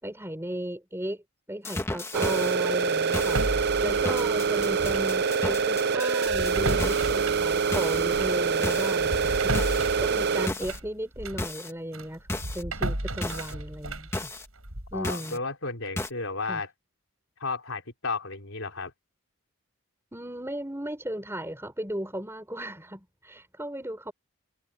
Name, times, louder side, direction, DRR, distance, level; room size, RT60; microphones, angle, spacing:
voice 1, 0.0-1.2 1.5-12.3 12.5-14.3 14.9-15.4 16.5-16.6 20.1-24.1, equal, 10° right, 5.7 m, -35 dB
sound 1, 1.6-2.6 3.1-3.5 4.1-7.1 7.7-8.0 8.6-9.0 9.5-9.9 10.5-10.8 11.4-11.7 12.3-12.6 13.2-13.5 14.1-14.5 15.0-15.4 16.0-16.1, left 1 dB, 10° left, 1.5 m, -33 dB
sound 2, 2.1-10.5, right 5 dB, 50° right, 0.6 m, -25 dB
sound 3, 3.2-5.2 5.5-5.7 6.2-11.5 11.9-15.0, right 1 dB, 70° right, 7.0 m, -34 dB
voice 2, 14.9-16.7 17.4-18.9, left 3 dB, 65° left, 3.9 m, -33 dB
head